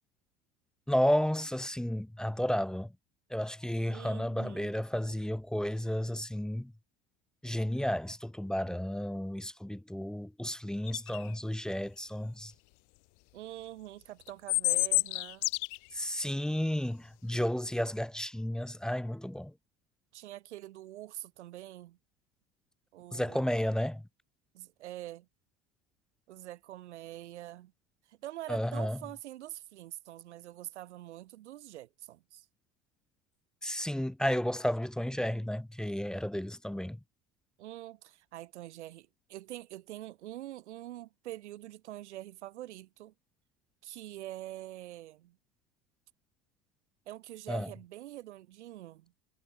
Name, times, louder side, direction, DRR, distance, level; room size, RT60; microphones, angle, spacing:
voice 1, 0.9-2.9 3.3-6.7 7.4-12.5 15.9-19.5 23.1-24.0 28.5-29.0 33.6-37.0 47.5-47.7, equal, ahead, 0.4 m, -32 dB
voice 2, 3.9-4.7 13.3-15.5 20.1-22.0 22.9-23.6 24.5-25.3 26.3-27.7 28.1-32.4 37.6-43.1 43.8-45.4 47.1-49.1, right 14 dB, 80° right, 1.2 m, -45 dB
sound 1, 10.9-11.2 14.3-15.8, left 40 dB or more, 65° left, 0.9 m, -28 dB
hypercardioid pair, 70°, 34 cm